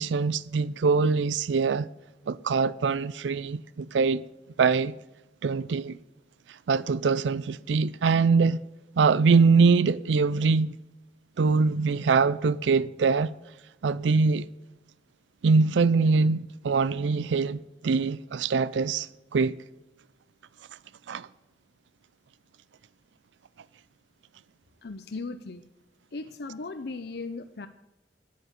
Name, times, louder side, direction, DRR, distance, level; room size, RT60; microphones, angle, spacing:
voice 1, 0.0-1.9 2.3-4.2 4.6-4.9 5.4-6.0 6.7-8.6 9.0-10.7 11.4-13.3 13.8-14.5 15.4-19.1 19.3-19.6 21.1-21.3, right 4 dB, 90° right, 0.4 m, -23 dB
voice 2, 24.8-25.6 26.1-27.7, left 3 dB, 60° left, 0.6 m, -37 dB
10.5 x 9.0 x 8.2 m
head